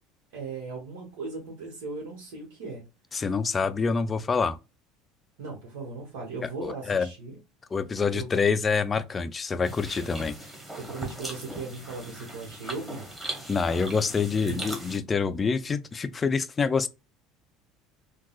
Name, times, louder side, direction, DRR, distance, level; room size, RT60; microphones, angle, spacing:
voice 1, 0.3-2.8 5.4-7.3 8.1-8.3 9.9-10.1 10.8-13.1 14.4-14.7, right 3 dB, 90° right, 1.2 m, -38 dB
voice 2, 3.1-4.6 6.6-7.1 7.7-10.4 13.5-16.9, left 5 dB, 20° left, 0.3 m, -26 dB
sound 1, 9.6-15.0, right 1 dB, 15° right, 1.0 m, -39 dB
3.6 x 2.2 x 2.3 m
supercardioid pair, 130°, 0 cm